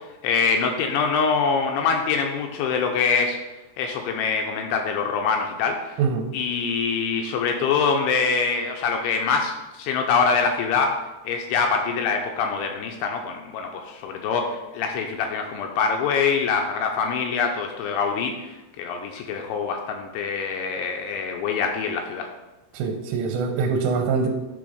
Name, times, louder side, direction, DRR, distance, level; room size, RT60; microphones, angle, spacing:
voice 1, 0.2-3.4 3.8-6.0 6.3-11.0 11.3-18.3 18.8-22.3, left 5 dB, 85° left, 3 dB, 2.7 m, -24 dB
voice 2, 6.0-6.3 22.7-24.3, right 5 dB, 80° right, 4 dB, 3.1 m, -24 dB
10.0 x 3.8 x 5.0 m, 1.0 s
omnidirectional pair, 5.7 m